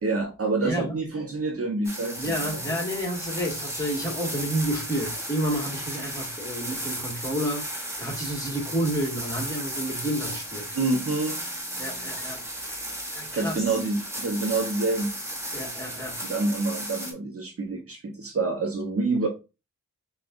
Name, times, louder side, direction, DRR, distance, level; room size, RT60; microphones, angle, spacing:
voice 1, 0.0-2.2 2.5-2.6 10.7-11.4 13.3-15.1 16.2-19.3, right 3 dB, 40° right, 0.9 m, -27 dB
voice 2, 0.6-1.0 2.2-10.7 11.8-12.9 13.1-13.6 15.5-16.2, right 1 dB, 10° left, 1.8 m, -30 dB
sound 1, 1.8-17.1, right 1 dB, 10° right, 1.4 m, -35 dB
5.7 x 2.5 x 2.5 m
cardioid pair, 55°, 34 cm